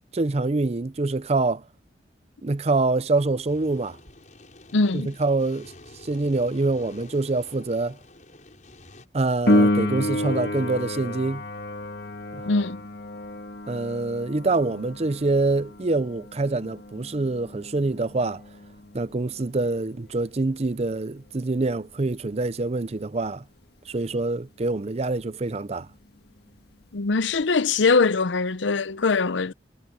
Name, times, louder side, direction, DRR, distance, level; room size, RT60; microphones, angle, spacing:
voice 1, 0.1-1.6 2.4-4.0 4.9-5.7 6.0-8.0 9.1-11.4 12.3-12.4 13.7-18.4 18.9-23.4 23.9-25.9, right 3 dB, 35° right, 0.6 m, -25 dB
sound 1, 3.5-9.1, left 2 dB, 45° left, 6.7 m, -48 dB
voice 2, 4.7-5.1 12.5-12.8 26.9-29.5, left 4 dB, 85° left, 0.7 m, -22 dB
Piano, 9.5-19.9 27.4-27.5, left 1 dB, 60° left, 1.7 m, -29 dB
head